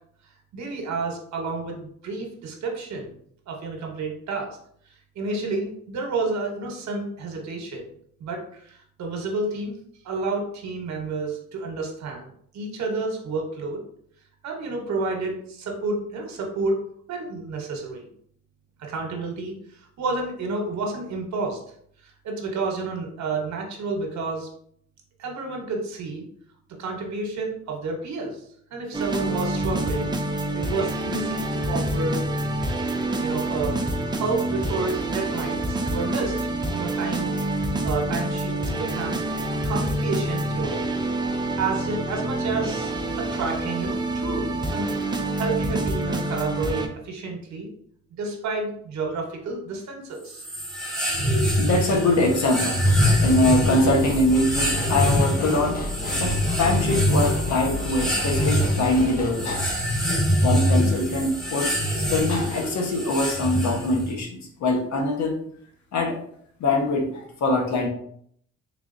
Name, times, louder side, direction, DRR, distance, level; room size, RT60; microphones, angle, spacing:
voice 1, 0.5-3.1 3.5-4.6 5.1-7.9 8.2-9.7 10.0-13.8 14.4-16.8 17.1-18.0 18.8-21.6 22.0-24.5 25.2-26.3 26.8-28.4 28.7-30.1 30.5-32.2 33.2-37.3 37.6-39.2 39.6-40.9 41.6-44.9 45.4-47.7 48.1-50.4, right 3 dB, 65° right, 1 dB, 0.9 m, -30 dB
sound 1, 28.9-46.9, right 1 dB, 15° right, 0.4 m, -27 dB
sound 2, 50.3-64.1, equal, ahead, 1.2 m, -24 dB
voice 2, 51.6-52.8 53.2-55.8 56.2-59.7 60.4-65.4 65.9-66.2 66.6-67.9, left 2 dB, 65° left, 1 dB, 1.0 m, -23 dB
sound 3, 52.9-59.7, left 2 dB, 30° left, 0.6 m, -31 dB
3.5 x 3.3 x 2.5 m, 0.65 s
cardioid pair, 90°, 30 cm